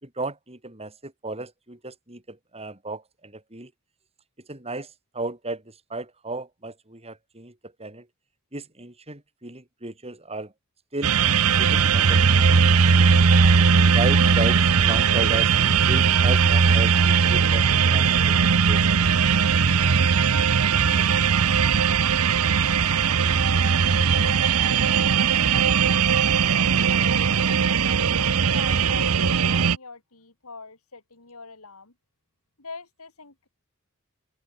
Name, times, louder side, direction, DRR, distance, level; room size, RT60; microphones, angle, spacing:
voice 1, 0.0-3.7 4.4-8.1 8.5-10.5 10.9-11.1 11.6-12.8 13.7-18.8, right 2 dB, 30° right, 5.0 m, -34 dB
sound 1, 11.0-29.8, right 6 dB, 80° right, 0.8 m, -19 dB
voice 2, 22.6-23.7 24.0-26.0 26.5-27.1 27.8-31.9 32.6-33.5, left 4 dB, 80° left, 3.3 m, -43 dB
open air
head